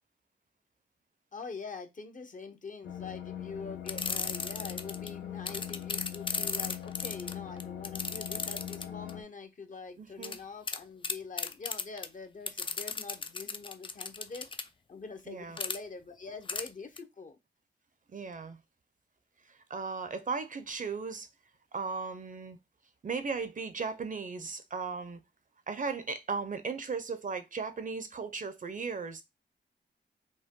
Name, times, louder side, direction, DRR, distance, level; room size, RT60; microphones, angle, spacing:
voice 1, 1.3-14.5 14.9-17.4, left 4 dB, 45° left, 0.8 m, -44 dB
sound 1, 2.8-9.2, left 11 dB, 80° left, 0.8 m, -41 dB
sound 2, 3.9-5.1 5.5-9.1 10.2-10.4 10.7-10.8 11.0-12.1 12.5-14.6 15.6-15.8 16.5-16.7 17.0-17.1, left 4 dB, 25° left, 0.4 m, -35 dB
voice 2, 10.0-10.4 15.3-15.6 18.1-18.6 19.7-21.3 21.7-22.6 23.0-25.2 25.7-29.2, right 4 dB, 45° right, 0.6 m, -36 dB
5.2 x 2.2 x 3.6 m
wide cardioid pair, 95°, 19 cm